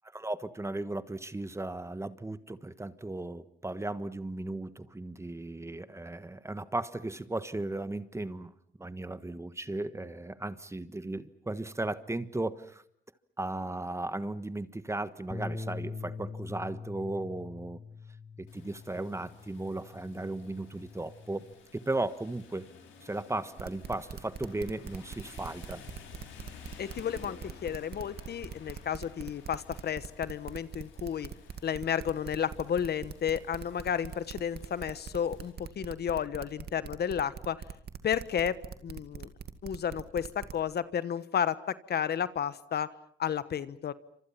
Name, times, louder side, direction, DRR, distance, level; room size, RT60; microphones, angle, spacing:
voice 1, 0.1-8.5 8.8-12.8 13.4-17.8 18.4-22.7 23.0-25.8, right 2 dB, 15° right, 13 dB, 1.4 m, -36 dB
Bass guitar, 15.3-21.5, left 4 dB, 20° left, 2.1 m, -43 dB
Rain, 18.5-35.5, left 6 dB, 80° left, 6.4 m, -54 dB
sound 1, 23.6-40.5, right 7 dB, 55° right, 2.2 m, -42 dB
voice 2, 26.8-31.3 31.6-37.6 38.0-38.5 38.8-39.3 39.6-41.5 41.9-42.9 43.2-43.9, left 8 dB, 55° left, 15 dB, 1.2 m, -32 dB
29.0 x 26.0 x 5.8 m, 0.64 s
cardioid pair, 90°, 20 cm